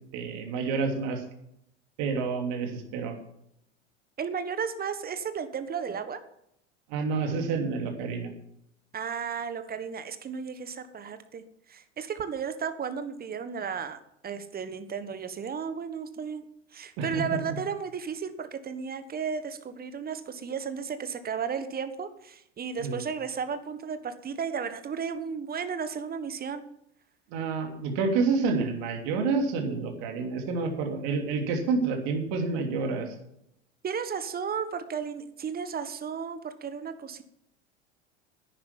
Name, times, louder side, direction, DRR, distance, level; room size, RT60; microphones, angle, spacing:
voice 1, 0.1-1.2 2.0-3.2 6.9-8.3 17.0-17.2 22.8-23.0 27.3-33.1, right 4 dB, 55° right, 4 dB, 3.1 m, -28 dB
voice 2, 4.2-6.2 8.9-16.4 16.7-26.6 33.8-37.2, right 6 dB, 25° right, 11 dB, 1.5 m, -34 dB
11.0 x 9.9 x 7.4 m, 0.78 s
figure-of-eight pair, 80°, 35 cm